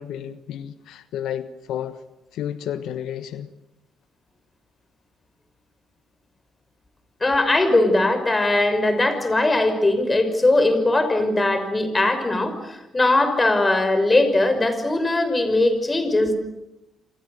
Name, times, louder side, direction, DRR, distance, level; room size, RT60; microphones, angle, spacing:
voice 1, 0.0-2.0 2.3-3.5, left 10 dB, 85° left, 1.3 m, -31 dB
voice 2, 7.2-16.4, left 2 dB, 20° left, 6.1 m, -20 dB
28.5 x 27.0 x 6.7 m
cardioid pair, 90°, 0 cm